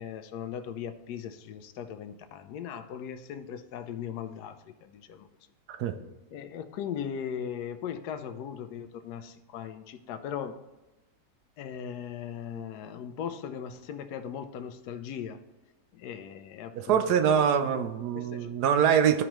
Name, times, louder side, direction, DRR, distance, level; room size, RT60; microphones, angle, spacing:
voice 1, 0.0-5.3 6.3-10.6 11.6-15.4 15.9-17.7 18.1-18.5, left 8 dB, 80° left, 10 dB, 1.1 m, -38 dB
voice 2, 16.7-19.2, right 8 dB, 75° right, 8 dB, 1.1 m, -24 dB
12.5 x 4.9 x 3.0 m, 1.1 s
omnidirectional pair, 1.7 m